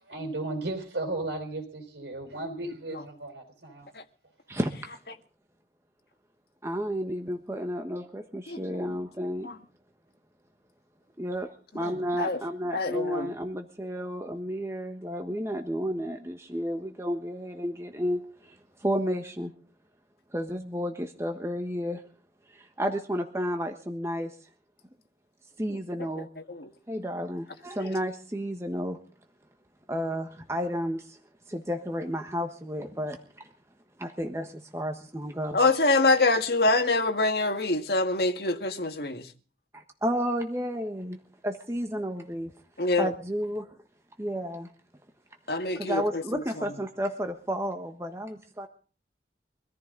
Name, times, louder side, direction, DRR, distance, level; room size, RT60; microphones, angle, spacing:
voice 1, 0.1-3.9, right 2 dB, 85° right, 4.5 m, -35 dB
voice 2, 6.6-9.5 11.2-19.5 20.3-22.0 22.5-24.3 25.6-26.3 26.9-29.0 29.9-31.2 31.5-33.5 34.0-35.6 39.7-42.5 43.0-43.7 44.2-44.7 45.7-48.7, equal, 15° right, 1.3 m, -32 dB
voice 3, 11.8-12.4 12.7-13.3 26.5-26.7 35.5-39.3 42.8-43.1 45.5-46.4, left 3 dB, 60° left, 1.9 m, -25 dB
24.0 x 14.0 x 3.9 m
head